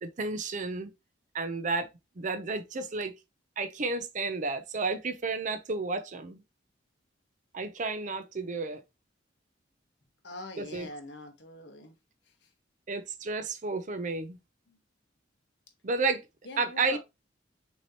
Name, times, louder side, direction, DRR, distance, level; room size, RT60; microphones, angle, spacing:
voice 1, 0.0-0.9 1.3-1.9 2.2-3.1 3.6-6.4 7.5-8.8 10.6-10.9 12.9-14.4 15.8-16.3 16.6-17.0, right 3 dB, 45° right, 0.6 m, -32 dB
voice 2, 10.2-11.9 14.7-14.8 16.4-17.0, left 2 dB, 75° left, 1.2 m, -43 dB
6.0 x 2.9 x 2.8 m
head